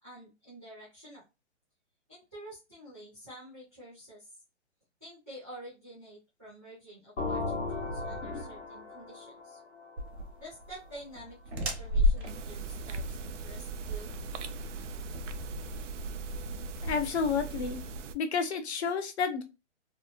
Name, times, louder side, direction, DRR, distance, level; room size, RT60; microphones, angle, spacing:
voice 1, 0.0-1.2 2.1-4.3 5.0-9.6 10.4-14.1, right 1 dB, 15° right, -11 dB, 0.4 m, -49 dB
sound 1, 7.2-10.9, left 3 dB, 90° left, 1.0 m, -37 dB
sound 2, 10.0-16.1, left 1 dB, 60° right, 0.9 m, -33 dB
sound 3, 12.3-18.1, right 3 dB, 85° right, 0.5 m, -39 dB
voice 2, 16.8-17.8 18.1-19.4, left 5 dB, 65° left, 7 dB, 0.7 m, -30 dB
2.8 x 2.1 x 2.4 m, 0.27 s
hypercardioid pair, 175°, 36 cm